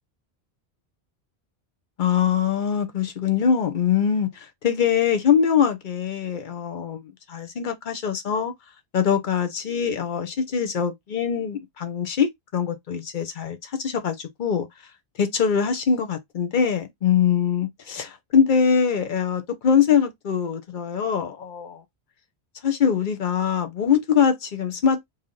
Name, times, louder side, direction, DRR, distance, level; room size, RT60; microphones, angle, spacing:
voice 1, 2.0-8.5 8.9-14.7 15.2-21.8 22.6-25.0, left 7 dB, 50° left, 0.9 m, -23 dB
3.3 x 2.8 x 3.7 m
omnidirectional pair, 1.1 m